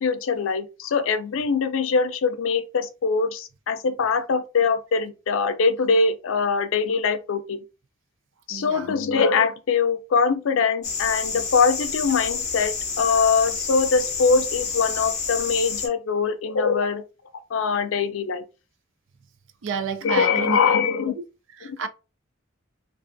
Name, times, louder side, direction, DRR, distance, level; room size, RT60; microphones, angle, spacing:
voice 1, 0.0-7.6 8.5-17.0 17.5-18.4 20.0-21.2, left 5 dB, 85° left, 0.4 m, -22 dB
voice 2, 8.5-8.9 19.6-20.6 21.6-21.9, right 5 dB, 70° right, 0.4 m, -30 dB
sound 1, 10.8-15.9, left 5 dB, 40° left, 0.6 m, -29 dB
2.4 x 2.4 x 2.5 m
head